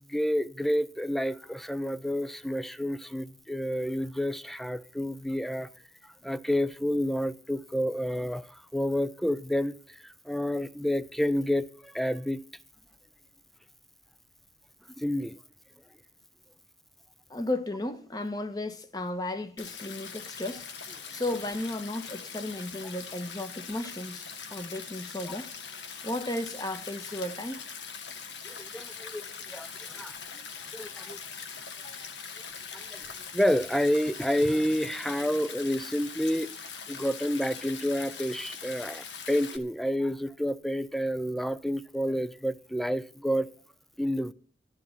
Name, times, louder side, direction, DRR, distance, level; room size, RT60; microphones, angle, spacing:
voice 1, 0.1-5.7 6.2-9.8 10.0-12.4 15.0-15.4 25.2-25.3 28.4-30.1 30.7-31.2 32.7-36.5 36.9-43.5 44.0-44.3, equal, ahead, 0.5 m, -29 dB
voice 2, 17.3-25.5 26.0-27.6 31.8-32.1, left 1 dB, 20° left, 1.2 m, -34 dB
Stream, 19.6-39.6, left 6 dB, 85° left, 1.5 m, -42 dB
12.5 x 11.5 x 5.8 m
head